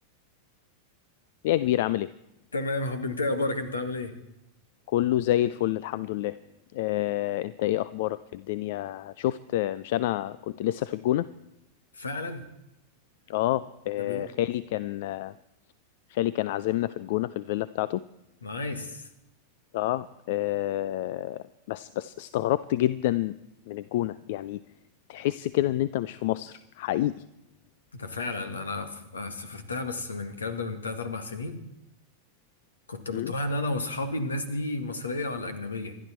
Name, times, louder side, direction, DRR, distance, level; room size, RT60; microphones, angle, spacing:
voice 1, 1.4-2.1 4.9-6.4 6.7-11.3 13.3-15.3 16.1-18.0 19.7-23.3 23.7-24.6 25.1-27.2 33.1-33.3, left 14 dB, 50° left, 18 dB, 0.5 m, -28 dB
voice 2, 2.5-4.2 11.9-12.5 14.0-14.3 18.4-19.1 27.9-31.6 32.9-36.0, left 2 dB, 75° left, 10 dB, 2.0 m, -32 dB
27.0 x 12.0 x 4.4 m, 0.85 s
figure-of-eight pair, 90°, 0 cm